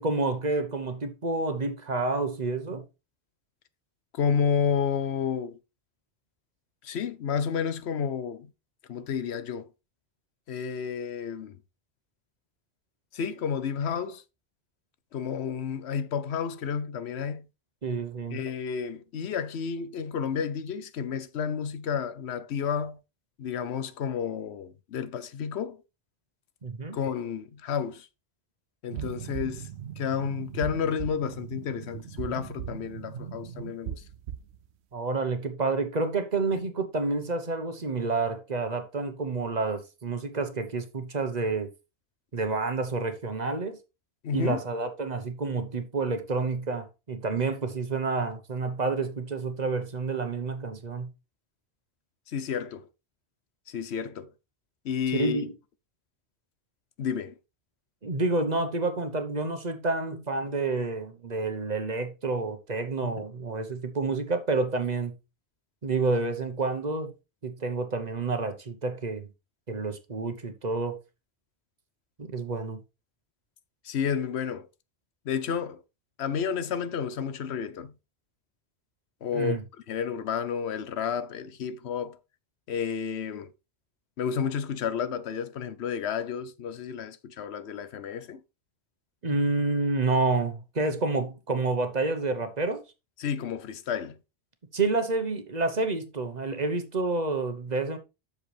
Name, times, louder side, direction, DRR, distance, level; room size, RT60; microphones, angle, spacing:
voice 1, 0.0-2.9 17.8-18.4 26.6-27.0 34.9-41.7 42.3-43.8 44.3-51.1 55.1-55.5 58.0-65.1 65.8-67.1 67.4-69.3 69.7-71.0 72.2-72.8 79.3-79.6 89.2-92.8 94.7-98.0, right 3 dB, 40° right, 1.1 m, -29 dB
voice 2, 4.1-5.6 6.8-8.5 8.9-9.7 10.5-11.6 13.1-14.2 15.1-17.5 18.3-23.0 23.4-25.8 26.9-28.1 28.8-29.7 30.0-34.0 44.2-44.6 52.3-52.9 53.7-54.3 54.8-55.4 57.0-57.4 73.8-74.7 75.3-75.8 76.2-77.9 79.2-79.6 79.9-82.2 82.7-83.5 84.2-88.4 93.2-94.2, left 7 dB, 80° left, 1.0 m, -31 dB
sound 1, 28.9-34.6, right 9 dB, 85° right, 0.9 m, -38 dB
7.9 x 6.6 x 3.3 m
omnidirectional pair, 1.1 m